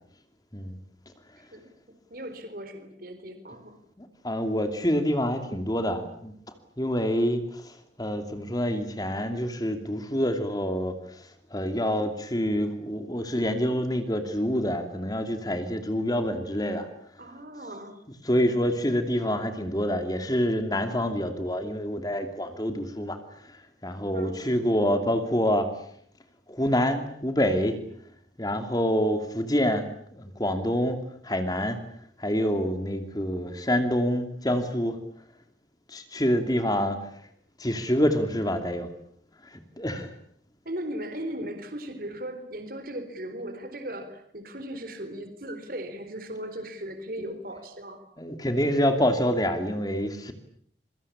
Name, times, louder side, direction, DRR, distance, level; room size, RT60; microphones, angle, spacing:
voice 1, 2.1-3.7 17.2-18.0 24.1-24.5 40.6-48.0, right 1 dB, 50° right, 8 dB, 4.1 m, -37 dB
voice 2, 4.0-6.3 6.8-11.3 11.5-16.9 18.1-23.2 23.5-25.7 26.5-27.8 28.4-31.0 31.2-31.8 32.2-35.0 35.9-37.1 37.6-38.9 39.5-40.1 47.2-47.3 48.2-50.3, equal, 20° left, 7 dB, 2.7 m, -27 dB
26.5 x 24.5 x 8.7 m, 0.67 s
head